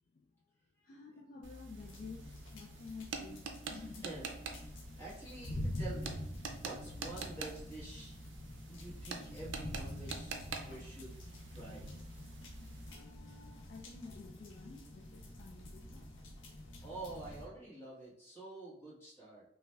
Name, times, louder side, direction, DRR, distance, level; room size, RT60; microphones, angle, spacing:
voice 1, 0.1-0.4 0.8-4.1 4.7-4.9 12.8-16.1 16.8-16.9, left 4 dB, 45° left, 0 dB, 0.3 m, -52 dB
sound 1, 1.4-12.9, right 4 dB, 80° right, 0.5 m, -47 dB
sound 2, 1.8-17.4, left 1 dB, 90° left, 0.6 m, -46 dB
voice 2, 3.7-4.3 5.0-6.2 6.6-8.2 8.7-11.2 11.5-11.9 16.8-19.4, right 2 dB, 15° left, -6 dB, 1.1 m, -48 dB
5.6 x 2.2 x 2.2 m, 0.73 s
head